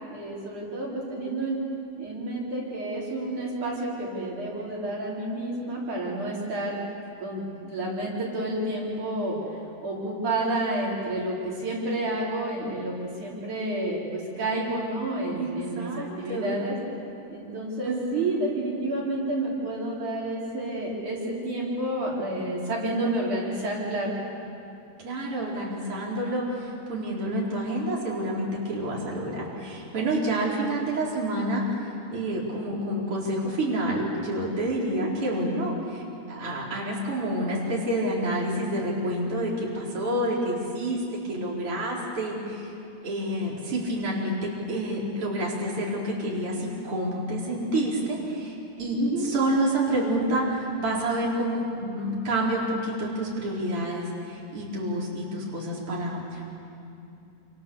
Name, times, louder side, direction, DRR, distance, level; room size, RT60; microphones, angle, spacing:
voice 1, 0.1-1.6 2.0-6.8 7.2-9.4 9.8-16.8 17.3-24.1 34.8-35.1 49.0-49.3, right 2 dB, 75° right, -4 dB, 5.6 m, -30 dB
voice 2, 15.4-16.5 17.8-18.4 25.0-31.6 32.1-42.7 43.0-56.5, right 1 dB, 45° right, -4 dB, 5.0 m, -28 dB
28.5 x 27.5 x 7.0 m, 2.7 s
omnidirectional pair, 3.5 m